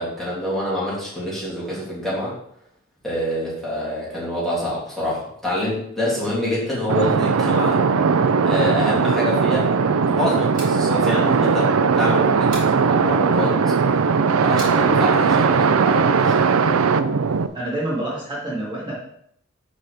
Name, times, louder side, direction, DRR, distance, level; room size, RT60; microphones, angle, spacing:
voice 1, 0.0-2.3 3.0-7.8 8.5-9.7 10.1-13.6 14.4-16.5, left 1 dB, ahead, -8 dB, 2.7 m, -26 dB
sound 1, 6.9-17.5, right 5 dB, 85° right, 0.5 m, -18 dB
sound 2, 10.5-10.8 12.5-12.8 14.6-14.8, right 1 dB, 40° right, 2.9 m, -35 dB
voice 2, 17.5-19.0, right 1 dB, 25° right, -7 dB, 2.3 m, -27 dB
11.0 x 4.2 x 3.5 m, 0.71 s
head